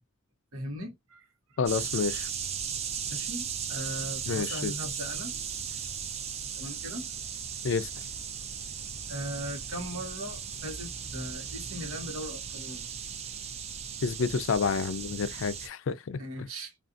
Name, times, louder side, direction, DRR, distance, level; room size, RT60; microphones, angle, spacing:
voice 1, 0.5-1.6 3.1-5.4 5.7-5.8 6.6-7.1 9.1-12.8 16.2-16.8, equal, 85° right, 1.0 m, -39 dB
voice 2, 1.6-2.3 4.3-4.7 7.6-7.9 14.0-16.5, left 5 dB, 65° left, 0.4 m, -29 dB
sound 1, 1.7-15.7, right 7 dB, 30° right, 0.3 m, -37 dB
2.5 x 2.4 x 2.4 m
head